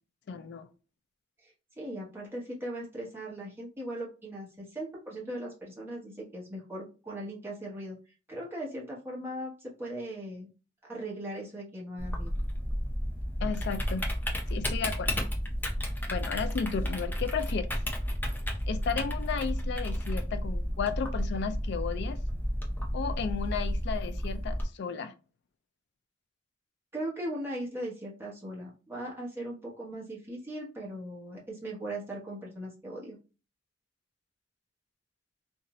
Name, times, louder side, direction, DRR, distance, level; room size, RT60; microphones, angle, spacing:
voice 1, 0.3-0.7 13.4-14.0 14.5-15.2 16.1-17.7 18.7-22.2 22.9-25.1, left 6 dB, 60° left, 0.4 m, -34 dB
voice 2, 1.8-8.0 8.3-10.5 10.8-12.3 26.9-33.2, right 1 dB, 10° right, 1.0 m, -39 dB
Typing, 12.0-24.6, equal, 10° left, 0.5 m, -32 dB
2.6 x 2.5 x 2.9 m
head